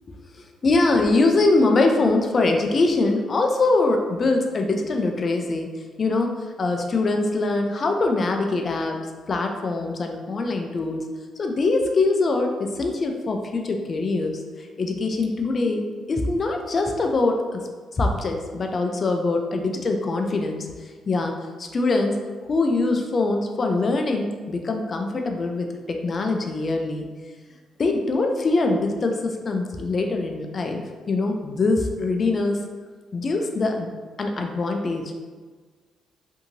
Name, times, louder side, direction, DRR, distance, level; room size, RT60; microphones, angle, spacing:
voice 1, 0.6-5.7 6.0-9.0 9.3-11.1 11.4-17.6 17.9-21.3 21.6-22.2 22.5-27.1 27.8-32.6 33.1-33.9 34.2-35.1, left 3 dB, 40° left, 3 dB, 0.4 m, -23 dB
2.7 x 2.7 x 2.6 m, 1.4 s
cardioid pair, 90°, 0 cm